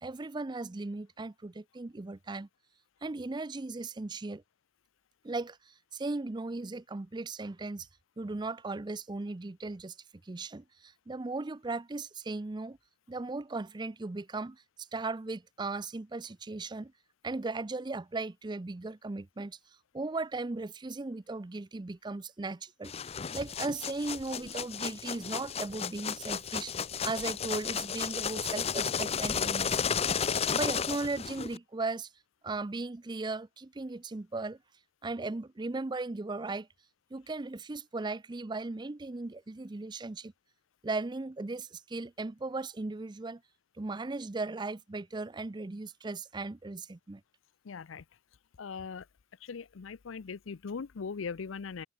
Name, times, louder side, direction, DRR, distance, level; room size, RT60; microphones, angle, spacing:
voice 1, 0.0-2.5 3.0-4.4 5.2-7.9 8.2-9.9 10.2-12.8 13.1-16.9 17.2-19.6 19.9-26.7 27.0-30.0 30.5-32.1 32.4-34.6 35.0-36.7 37.1-40.3 40.8-43.4 43.8-47.2, right 3 dB, 20° right, 0.5 m, -37 dB
sound 1, 22.8-31.6, left 7 dB, 30° left, 0.6 m, -33 dB
voice 2, 47.6-48.0 48.6-49.0 49.4-51.9, left 5 dB, 85° left, 0.5 m, -40 dB
open air
head